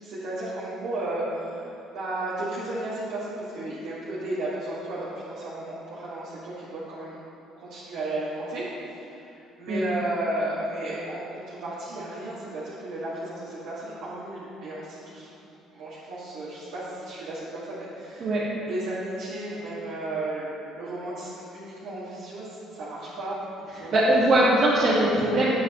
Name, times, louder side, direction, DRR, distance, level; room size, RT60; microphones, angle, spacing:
voice 1, 0.0-7.2 7.5-15.3 15.7-18.4 18.6-23.9, right 1 dB, 75° right, -10 dB, 2.1 m, -34 dB
voice 2, 23.9-25.5, right 1 dB, 50° right, -9 dB, 1.8 m, -21 dB
9.4 x 8.6 x 3.1 m, 2.8 s
supercardioid pair, 75°, 0 cm